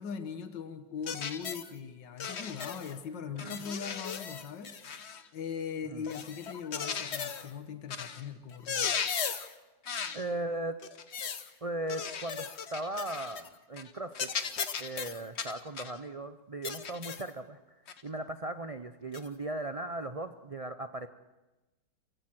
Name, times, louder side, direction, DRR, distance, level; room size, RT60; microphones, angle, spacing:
voice 1, 0.0-4.8 5.3-8.9, left 6 dB, 80° left, 9 dB, 2.0 m, -40 dB
sound 1, 1.1-1.7 2.2-3.0 3.4-5.3 6.0-7.5 7.9-8.2 8.5-9.5 9.9-10.2 10.8-11.5 11.9-13.5 13.8-13.9 14.2-16.0 16.6-17.3 17.9-18.0 19.1-19.3, left 6 dB, 45° left, 1.1 m, -37 dB
voice 2, 10.1-10.8 11.6-14.3 14.8-17.6 18.0-21.1, right 2 dB, 60° right, 9 dB, 0.3 m, -37 dB
27.0 x 16.5 x 7.8 m, 1.1 s
omnidirectional pair, 1.9 m